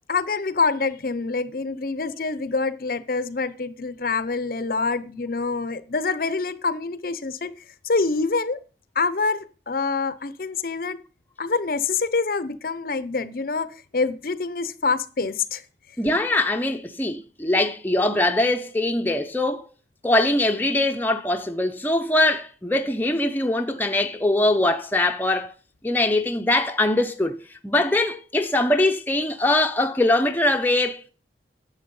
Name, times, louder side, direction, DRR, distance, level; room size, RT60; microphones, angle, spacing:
voice 1, 0.1-7.5 7.8-8.6 8.9-11.0 11.4-15.6, left 4 dB, 50° left, 0.7 m, -26 dB
voice 2, 16.0-19.7 20.0-25.5 25.8-27.4 27.6-31.1, left 1 dB, 10° left, 0.7 m, -22 dB
11.0 x 7.2 x 5.3 m
head